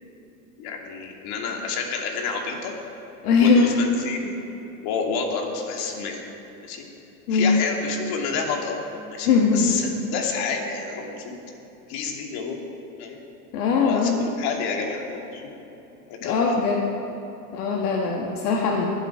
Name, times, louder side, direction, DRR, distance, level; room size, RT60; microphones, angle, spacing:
voice 1, 0.6-2.7 3.4-4.3 4.8-6.2 6.6-6.8 7.3-8.8 9.1-11.4 11.9-12.6 13.0-13.2 13.8-15.4 16.1-16.4, left 5 dB, 55° left, 1 dB, 2.7 m, -29 dB
voice 2, 3.2-3.8 7.3-7.6 9.2-9.8 13.5-14.2 16.2-16.9 17.5-18.9, left 4 dB, 80° left, 0 dB, 1.5 m, -20 dB
21.0 x 8.1 x 4.9 m, 2.9 s
hypercardioid pair, 100°, 45 cm